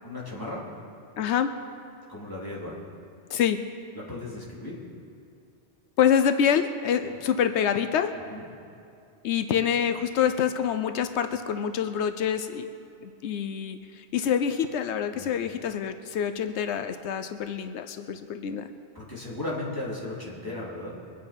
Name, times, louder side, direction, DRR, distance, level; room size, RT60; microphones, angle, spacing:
voice 1, 0.0-0.6 2.1-2.8 3.9-4.8 7.0-7.1 8.3-8.5 15.1-15.4 18.9-21.0, left 2 dB, 20° left, -6 dB, 3.1 m, -36 dB
voice 2, 1.2-1.5 3.3-3.6 6.0-8.2 9.2-12.7 13.0-18.7, left 8 dB, 90° left, 9 dB, 0.9 m, -26 dB
23.0 x 8.9 x 5.2 m, 2.6 s
omnidirectional pair, 1.1 m